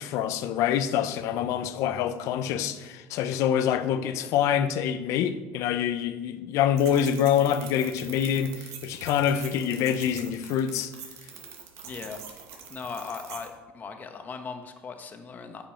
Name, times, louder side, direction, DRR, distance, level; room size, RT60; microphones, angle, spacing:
voice 1, 0.0-10.9, left 9 dB, 70° left, 0.7 m, -26 dB
sound 1, 6.8-13.5, right 7 dB, 65° right, 2.0 m, -44 dB
voice 2, 11.8-12.2 12.7-15.7, left 5 dB, 35° left, 1.2 m, -38 dB
9.0 x 5.3 x 7.6 m
cardioid pair, 115°, 6 cm